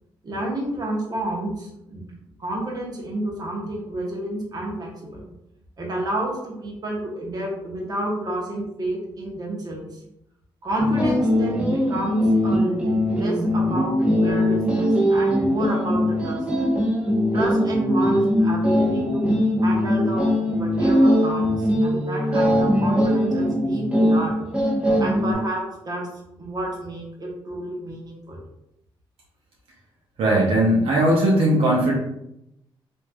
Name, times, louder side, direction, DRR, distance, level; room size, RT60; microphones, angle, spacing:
voice 1, 0.2-2.0 2.4-5.3 5.8-9.9 10.6-16.4 17.3-19.3 19.6-24.4 25.0-26.0 26.4-28.4, right 1 dB, 40° right, -2 dB, 0.9 m, -29 dB
sound 1, 10.8-25.3, equal, 10° right, 0.8 m, -21 dB
voice 2, 30.2-31.9, right 1 dB, 70° right, -3 dB, 0.7 m, -18 dB
3.0 x 2.6 x 2.2 m, 0.82 s
cardioid pair, 70°, 10 cm